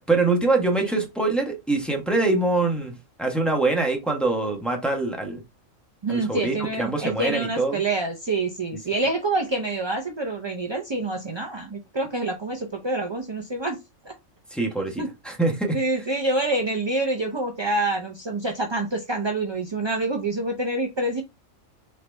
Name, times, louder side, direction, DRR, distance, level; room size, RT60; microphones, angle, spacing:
voice 1, 0.1-5.4 6.1-7.8 14.5-15.8, right 3 dB, ahead, 0.9 m, -24 dB
voice 2, 6.0-13.8 14.0-14.1 15.0-15.1 15.7-21.2, right 2 dB, 45° right, 0.3 m, -27 dB
3.9 x 3.2 x 3.3 m
omnidirectional pair, 1.4 m